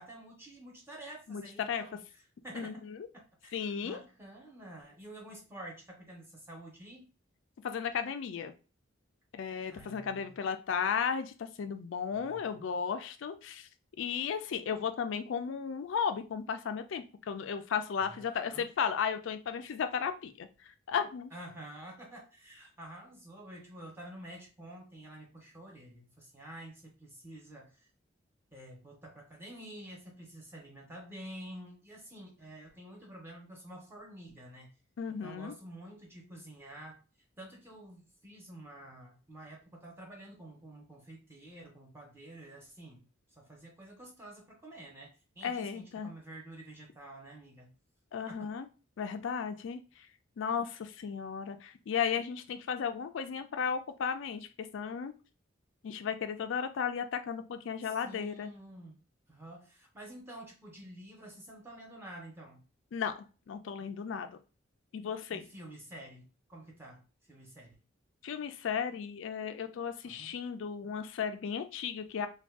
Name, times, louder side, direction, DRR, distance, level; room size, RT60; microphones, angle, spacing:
voice 1, 0.0-2.0 2.4-2.8 3.4-7.1 9.7-10.4 12.2-12.7 18.1-18.7 21.3-27.9 28.5-34.7 35.1-37.0 37.4-43.0 43.4-47.7 48.3-48.5 57.8-59.0 59.3-62.6 65.3-67.8 70.0-70.3, right 1 dB, 10° right, -1 dB, 0.6 m, -49 dB
voice 2, 1.3-1.8 2.5-3.0 3.5-4.0 7.6-8.5 9.3-13.7 14.0-21.3 35.0-35.5 45.4-46.1 48.1-48.7 49.0-50.1 50.4-54.5 54.7-55.1 55.8-58.5 62.9-64.4 64.9-65.5 68.2-72.3, left 7 dB, 70° left, 9 dB, 0.3 m, -35 dB
2.4 x 2.2 x 3.5 m, 0.35 s
head